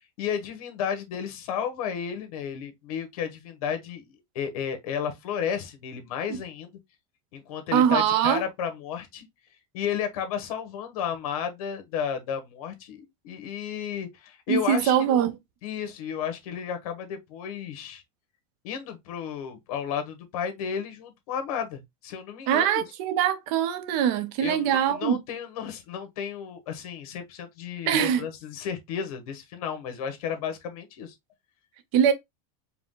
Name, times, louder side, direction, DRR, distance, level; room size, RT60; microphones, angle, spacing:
voice 1, 0.2-6.8 7.3-9.3 9.7-14.9 15.6-18.0 18.6-22.8 24.4-31.1, left 8 dB, 75° left, 1.3 m, -33 dB
voice 2, 7.7-8.4 14.5-15.3 22.5-25.2 27.9-28.3 31.9-32.1, right 9 dB, 50° right, 0.8 m, -22 dB
4.7 x 2.3 x 3.7 m
supercardioid pair, 165°, 19 cm